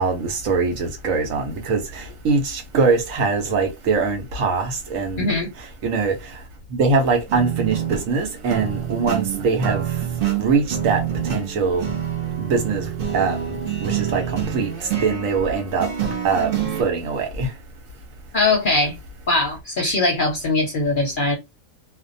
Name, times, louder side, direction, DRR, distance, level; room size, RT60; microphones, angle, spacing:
voice 1, 0.0-5.3 5.6-6.4 6.7-9.8 10.4-11.9 12.4-15.9 16.2-17.5, right 4 dB, 75° right, 1.2 m, -23 dB
voice 2, 5.2-5.5 18.3-18.9 19.3-21.4, left 2 dB, 55° left, 0.6 m, -21 dB
sound 1, 7.3-16.8, right 9 dB, 55° right, 0.7 m, -27 dB
2.6 x 2.1 x 2.5 m
omnidirectional pair, 1.4 m